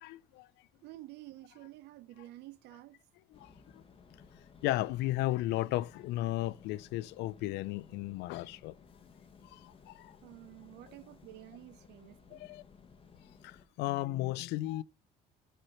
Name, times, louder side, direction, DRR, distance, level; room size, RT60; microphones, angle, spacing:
voice 1, 0.0-0.5 3.3-3.8 4.6-8.7 9.4-10.1 12.3-12.6 13.4-14.8, left 16 dB, 85° left, 0.5 m, -35 dB
voice 2, 0.8-3.0 10.2-12.5, right 16 dB, 85° right, 0.7 m, -51 dB
sound 1, 3.3-13.6, left 6 dB, 30° left, 1.4 m, -58 dB
7.9 x 4.4 x 5.5 m
cardioid pair, 110°, 17 cm